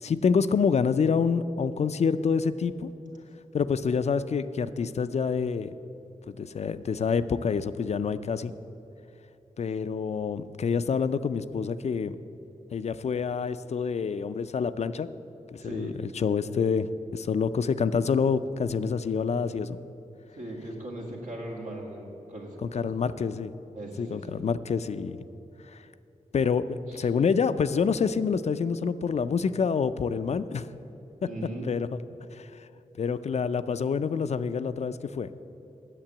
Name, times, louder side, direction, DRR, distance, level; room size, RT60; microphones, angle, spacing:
voice 1, 0.0-2.9 3.5-5.7 6.3-8.5 9.6-12.2 12.7-15.1 15.5-19.8 22.6-23.5 24.0-25.2 25.7-25.8 26.3-30.7 31.7-31.9 32.3-32.7 33.0-35.3, left 6 dB, 55° left, 13 dB, 0.4 m, -27 dB
voice 2, 15.6-16.0 20.4-22.9 23.7-24.4 26.9-27.1 31.2-31.7, right 1 dB, 80° right, -1 dB, 2.0 m, -38 dB
8.9 x 6.7 x 8.6 m, 3.0 s
wide cardioid pair, 105°, 13 cm